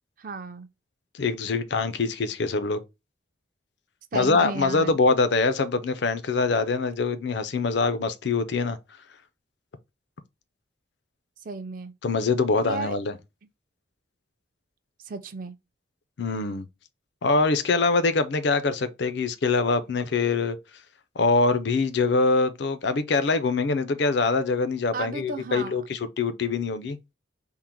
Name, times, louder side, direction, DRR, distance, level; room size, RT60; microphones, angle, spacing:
voice 1, 0.2-0.7 4.1-5.0 11.4-11.9 12.6-13.0 15.0-15.6 24.9-25.8, right 4 dB, 45° right, 0.4 m, -34 dB
voice 2, 1.1-2.8 4.1-8.8 12.0-13.1 16.2-16.7 17.2-20.6 21.2-27.0, left 3 dB, 65° left, 0.5 m, -24 dB
3.7 x 2.1 x 4.3 m
head